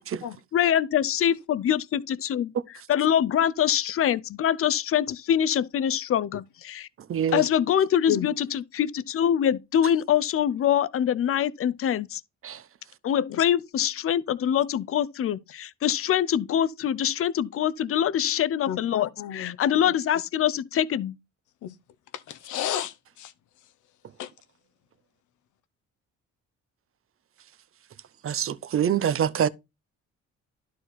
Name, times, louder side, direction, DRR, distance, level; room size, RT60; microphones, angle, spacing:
voice 1, 0.5-2.5 2.9-6.9 7.3-12.2 13.0-21.2, left 9 dB, 50° left, 0.6 m, -24 dB
voice 2, 7.1-7.4 12.4-12.6 28.2-29.5, right 9 dB, 45° right, 0.7 m, -25 dB
voice 3, 18.7-19.6 19.9-20.0 21.6-21.8 22.1-23.3 24.2-24.3, left 11 dB, 75° left, 0.8 m, -32 dB
11.5 x 4.8 x 4.1 m
cardioid pair, 90°, 30 cm